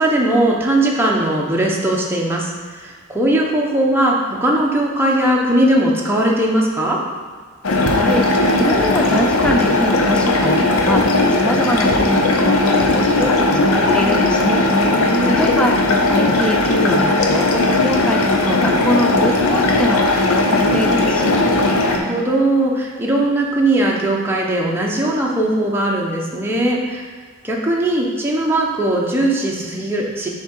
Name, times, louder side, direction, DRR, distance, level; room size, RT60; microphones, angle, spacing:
voice 1, 0.0-7.0 14.7-15.4 21.8-27.0 27.4-30.3, right 1 dB, 10° right, -3 dB, 0.9 m, -19 dB
sound 1, 7.6-22.0, left 2 dB, 80° left, 0.8 m, -17 dB
voice 2, 7.7-21.3, equal, 5° left, 1 dB, 0.6 m, -24 dB
7.1 x 3.7 x 4.5 m, 1.6 s
head